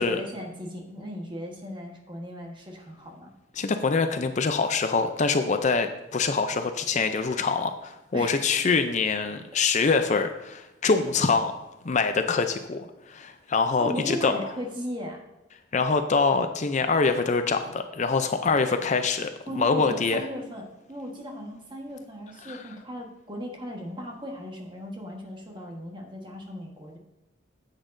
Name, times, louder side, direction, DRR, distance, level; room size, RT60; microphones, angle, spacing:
voice 1, 0.0-3.3 8.1-8.6 13.8-15.2 19.5-27.0, equal, 25° right, 1 dB, 1.3 m, -37 dB
voice 2, 3.6-11.5 11.8-14.3 15.7-20.2 22.5-22.6, left 4 dB, 40° left, 8 dB, 0.4 m, -25 dB
9.7 x 8.2 x 2.6 m, 0.98 s
head